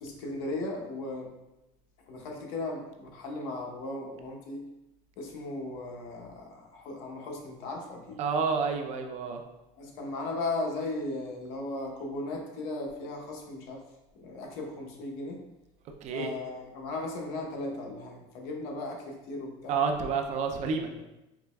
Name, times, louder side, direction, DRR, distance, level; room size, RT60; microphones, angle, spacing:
voice 1, 0.0-1.3 2.1-4.7 5.2-8.2 9.8-13.8 14.2-15.4 16.1-19.8 20.8-20.9, left 2 dB, 75° left, 0 dB, 0.8 m, -37 dB
voice 2, 8.2-9.4 16.0-16.3 19.7-20.9, right 5 dB, 50° right, 5 dB, 0.5 m, -29 dB
4.7 x 3.0 x 2.2 m, 0.96 s
cardioid pair, 140°, 15 cm